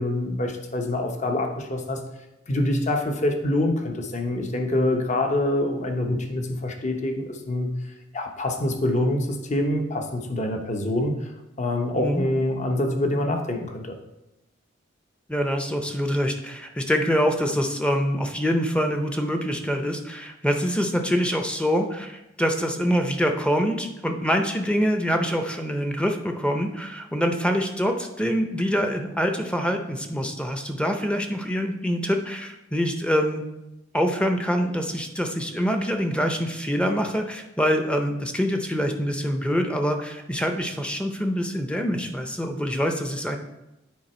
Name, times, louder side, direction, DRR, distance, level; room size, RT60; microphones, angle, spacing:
voice 1, 0.0-2.0 2.5-7.7 8.1-11.3 11.6-14.0, left 1 dB, 40° left, 4 dB, 0.9 m, -25 dB
voice 2, 11.9-12.2 15.3-33.4 33.9-43.4, equal, 5° left, 5 dB, 0.6 m, -25 dB
9.4 x 4.4 x 4.3 m, 0.93 s
head